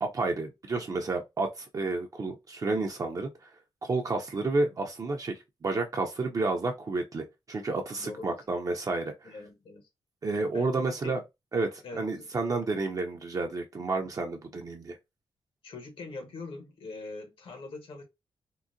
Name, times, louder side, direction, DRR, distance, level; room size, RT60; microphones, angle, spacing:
voice 1, 0.0-3.5 3.8-9.3 10.2-11.2 11.5-15.0, right 3 dB, 35° right, 0.5 m, -31 dB
voice 2, 8.0-8.4 9.2-9.9 10.5-11.2 11.8-12.3 15.6-18.0, left 3 dB, 70° left, 1.1 m, -43 dB
3.7 x 2.1 x 2.5 m
wide cardioid pair, 115°, 10 cm